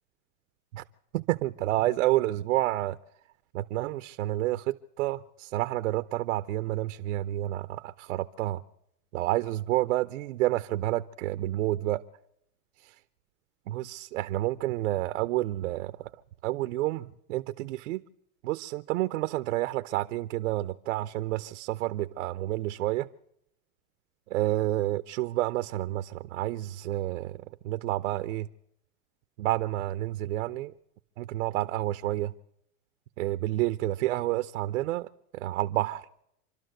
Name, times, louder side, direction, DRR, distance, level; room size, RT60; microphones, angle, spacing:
voice 1, 1.1-3.0 3.5-8.6 9.1-12.0 13.7-16.1 16.4-18.0 18.4-23.1 24.3-27.4 27.6-28.5 29.4-30.7 31.2-32.3 33.2-36.0, right 16 dB, 85° right, 0.8 m, -29 dB
26.5 x 12.5 x 7.9 m
supercardioid pair, 115°, 38 cm